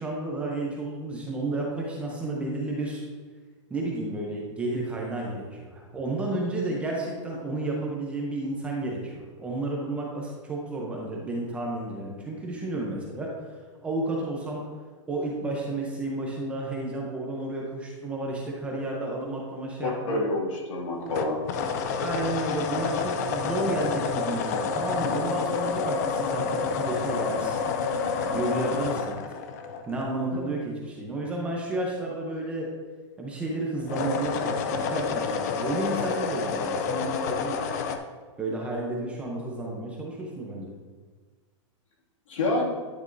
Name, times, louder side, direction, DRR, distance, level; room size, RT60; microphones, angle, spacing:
voice 1, 0.0-3.0 3.7-13.3 13.8-14.6 15.1-20.2 22.0-27.6 28.1-29.2 29.9-32.7 33.2-37.6 38.4-40.7, right 2 dB, 5° right, -2 dB, 0.6 m, -31 dB
voice 2, 19.8-21.4 30.3-30.4 42.3-42.7, left 2 dB, 75° left, -2 dB, 2.2 m, -28 dB
sound 1, 21.1-30.3 33.8-38.0, left 5 dB, 35° left, 0.4 m, -29 dB
9.9 x 6.0 x 2.6 m, 1.4 s
supercardioid pair, 170°, 16 cm